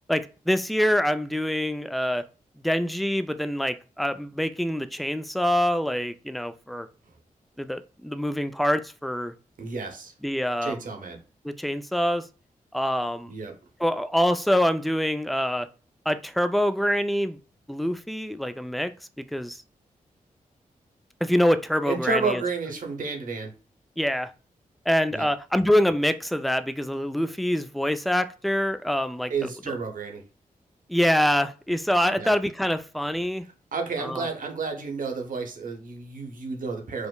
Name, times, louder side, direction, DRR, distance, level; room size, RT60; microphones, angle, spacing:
voice 1, 0.1-2.2 2.6-6.9 7.6-9.3 10.2-10.8 11.4-12.3 12.7-13.3 13.8-15.7 16.1-17.4 17.7-18.9 19.2-19.6 21.2-22.4 24.0-24.3 24.9-29.8 30.9-33.4 34.0-34.3, equal, ahead, 0.3 m, -25 dB
voice 2, 9.6-10.1 10.6-11.2 13.3-13.5 21.8-23.5 25.1-25.3 29.3-30.2 32.1-32.3 33.7-37.1, right 4 dB, 65° right, 0.9 m, -31 dB
5.0 x 2.0 x 2.3 m
cardioid pair, 45°, 15 cm